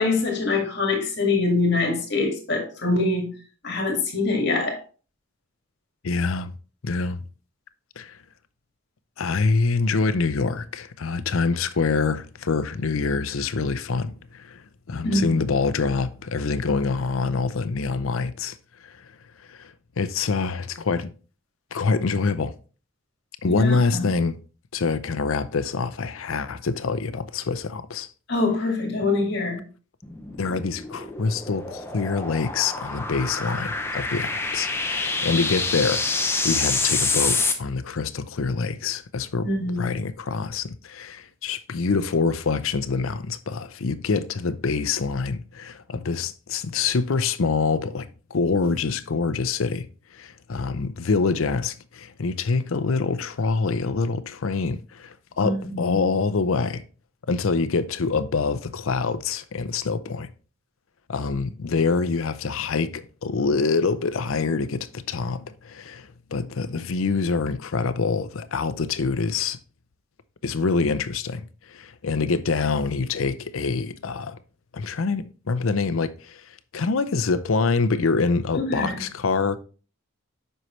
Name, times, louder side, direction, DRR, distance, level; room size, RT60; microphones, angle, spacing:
voice 1, 0.0-3.3 3.6-4.8 15.0-15.3 23.5-24.1 28.3-29.6 39.4-39.9 55.4-56.0 78.5-79.0, left 3 dB, 55° left, 2.0 m, -24 dB
voice 2, 6.0-6.5 6.8-7.2 8.0-8.2 9.2-18.6 18.8-19.1 19.5-21.1 21.7-22.5 23.4-24.4 24.7-28.1 30.4-36.1 36.4-39.5 39.8-49.9 50.1-56.8 57.3-60.3 61.1-69.6 70.4-74.4 74.7-79.6, left 4 dB, 75° left, 0.6 m, -25 dB
sound 1, 30.0-37.5, left 3 dB, 10° left, 0.7 m, -27 dB
7.8 x 5.6 x 3.2 m
head